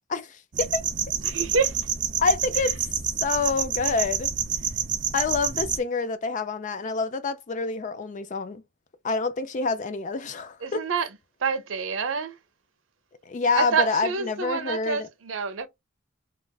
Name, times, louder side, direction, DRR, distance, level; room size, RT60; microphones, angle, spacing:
voice 1, 0.1-0.8 2.2-2.8 3.2-4.3 5.1-8.6 9.0-10.8 13.3-15.1, left 4 dB, 40° left, 0.4 m, -27 dB
sound 1, 0.5-5.8, right 8 dB, 40° right, 0.5 m, -28 dB
voice 2, 1.2-1.8 10.6-11.1 11.4-12.4 13.5-15.7, right 5 dB, 90° right, 0.6 m, -27 dB
3.2 x 2.4 x 2.3 m
head